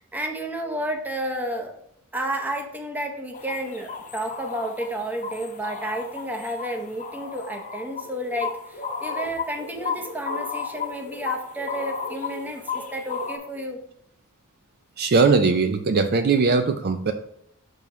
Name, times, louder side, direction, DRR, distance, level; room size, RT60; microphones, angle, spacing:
voice 1, 0.0-1.8 2.1-13.8, right 1 dB, 10° right, 3 dB, 0.7 m, -31 dB
sound 1, 3.3-13.4, left 5 dB, 35° left, 0.9 m, -34 dB
voice 2, 15.0-17.1, right 4 dB, 45° right, 8 dB, 0.4 m, -20 dB
5.7 x 5.5 x 3.0 m, 0.75 s
head